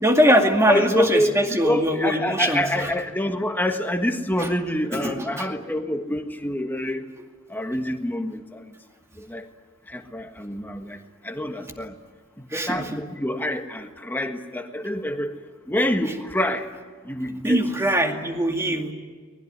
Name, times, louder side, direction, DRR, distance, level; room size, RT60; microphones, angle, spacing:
voice 1, 0.0-2.7 4.4-4.5 5.0-5.5 12.5-13.0 17.4-18.9, equal, 15° right, 3 dB, 2.3 m, -22 dB
voice 2, 0.7-7.1 7.5-8.7 9.2-9.4 9.9-11.0 11.2-11.9 12.5-15.3 15.7-16.7 17.0-17.6, left 1 dB, 10° left, 5 dB, 1.6 m, -26 dB
24.0 x 20.5 x 9.7 m, 1.5 s
head